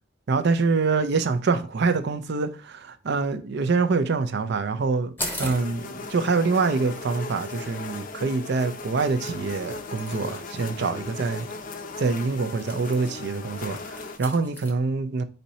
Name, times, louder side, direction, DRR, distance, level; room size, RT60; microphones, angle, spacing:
voice 1, 0.3-5.1 5.4-11.5 12.0-15.2, right 4 dB, 55° right, 0.5 m, -25 dB
sound 1, 5.2-14.7, left 1 dB, 10° left, 0.8 m, -42 dB
sound 2, 5.5-14.2, left 4 dB, 40° left, 0.5 m, -37 dB
4.3 x 2.7 x 4.1 m
head